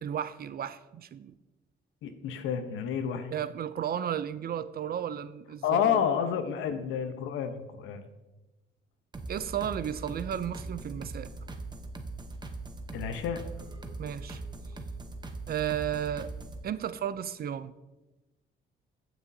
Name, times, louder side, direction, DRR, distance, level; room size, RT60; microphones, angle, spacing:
voice 1, 0.0-1.3 3.3-6.0 9.3-11.3 14.0-14.4 15.5-16.3 16.6-17.7, right 9 dB, 50° right, 15 dB, 0.5 m, -33 dB
voice 2, 2.0-3.3 5.6-8.0 12.9-13.4, left 8 dB, 85° left, 8 dB, 0.9 m, -29 dB
sound 1, 9.1-16.6, right 3 dB, 20° right, 0.9 m, -41 dB
16.5 x 6.1 x 2.7 m, 1.1 s
cardioid pair, 90°, 20 cm